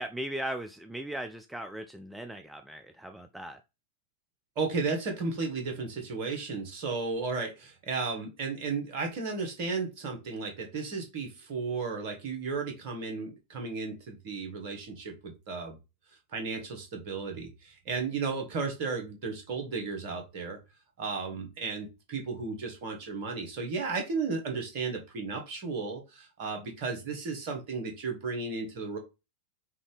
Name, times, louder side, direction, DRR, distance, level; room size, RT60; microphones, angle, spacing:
voice 1, 0.0-3.6, right 1 dB, 5° right, 6 dB, 0.4 m, -38 dB
voice 2, 4.5-15.8 16.3-20.6 21.0-29.0, right 4 dB, 45° right, 4 dB, 1.5 m, -34 dB
5.6 x 2.7 x 3.3 m, 0.26 s
figure-of-eight pair, 90°, 0 cm